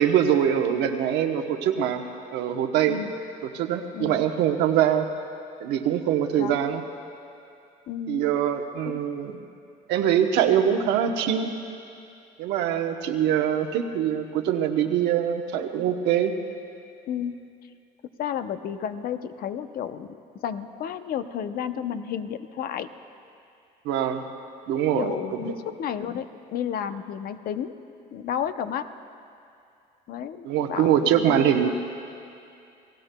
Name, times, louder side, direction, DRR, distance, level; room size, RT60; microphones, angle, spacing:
voice 1, 0.0-2.0 2.3-3.0 3.5-5.1 5.6-6.8 8.1-9.4 9.9-11.5 12.4-16.3 23.8-24.3 24.7-25.1 25.4-25.5 30.4-31.7, right 9 dB, 90° right, 5 dB, 1.0 m, -23 dB
voice 2, 7.9-8.3 8.8-9.0 17.1-17.4 18.2-22.9 25.0-27.7 28.1-28.9 30.1-31.5, left 8 dB, 60° left, 10 dB, 0.7 m, -32 dB
29.0 x 17.0 x 2.2 m, 2.5 s
cardioid pair, 110°, 17 cm